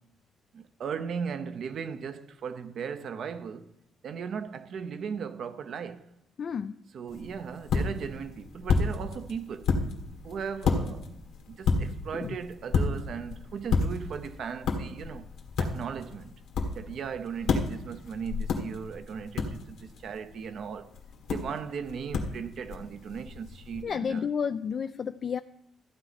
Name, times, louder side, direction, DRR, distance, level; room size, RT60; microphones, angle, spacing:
voice 1, 0.5-3.7 4.0-6.1 6.9-9.7 10.2-11.2 11.5-15.3 15.6-16.4 16.7-20.9 21.3-24.3, right 6 dB, 65° right, 0.8 m, -37 dB
voice 2, 6.4-6.8 12.1-12.4 23.8-25.4, left 6 dB, 50° left, 0.3 m, -31 dB
sound 1, 7.1-23.8, left 4 dB, 80° left, 1.6 m, -32 dB
14.0 x 9.1 x 4.2 m
cardioid pair, 90°, 0 cm